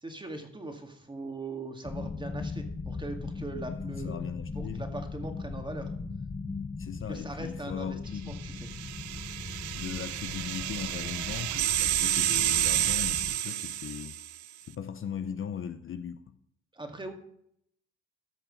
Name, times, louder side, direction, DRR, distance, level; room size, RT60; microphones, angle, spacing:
voice 1, 0.0-4.2 4.6-5.9 7.1-8.6 16.7-17.1, right 2 dB, 15° right, 2.0 m, -40 dB
sound 1, 1.8-13.3, left 4 dB, 20° left, 1.0 m, -39 dB
voice 2, 3.7-4.9 6.8-8.4 9.8-14.2 14.7-16.4, left 8 dB, 45° left, 0.6 m, -38 dB
sound 2, 8.5-14.4, right 13 dB, 75° right, 0.5 m, -30 dB
14.0 x 6.0 x 5.1 m
cardioid pair, 90°, 30 cm